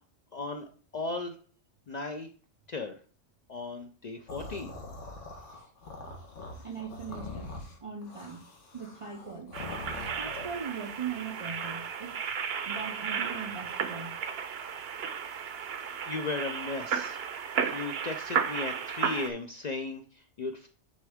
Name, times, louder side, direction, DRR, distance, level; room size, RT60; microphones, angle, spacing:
voice 1, 0.3-1.3 1.9-2.3 2.7-2.9 3.5-4.7 16.1-17.2 17.6-20.7, left 3 dB, 55° left, 0.5 m, -36 dB
sound 1, 4.3-10.6, left 2 dB, 80° left, 1.5 m, -43 dB
voice 2, 6.6-7.5 7.8-8.5 8.7-9.8 10.2-12.2 12.7-14.3, right 6 dB, 45° right, 0.4 m, -40 dB
sound 2, 9.5-19.3, right 7 dB, 60° right, 0.8 m, -34 dB
9.0 x 3.5 x 3.5 m
omnidirectional pair, 1.2 m